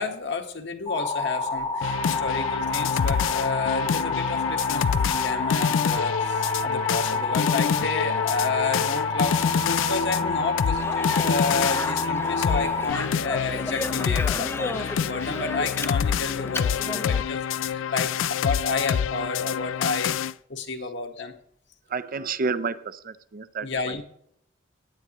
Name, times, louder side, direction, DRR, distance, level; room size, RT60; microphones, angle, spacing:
voice 1, 0.0-20.1 20.5-21.3 23.6-24.0, left 4 dB, 65° left, 4 dB, 1.5 m, -31 dB
sound 1, 0.9-12.9, left 3 dB, 30° left, 1.0 m, -28 dB
sound 2, 1.8-20.3, left 7 dB, 85° left, 0.4 m, -27 dB
Speech, 10.8-17.2, left 2 dB, 15° left, 0.5 m, -34 dB
voice 2, 21.9-24.0, right 4 dB, 50° right, 14 dB, 0.6 m, -31 dB
17.5 x 9.3 x 3.0 m, 0.70 s
head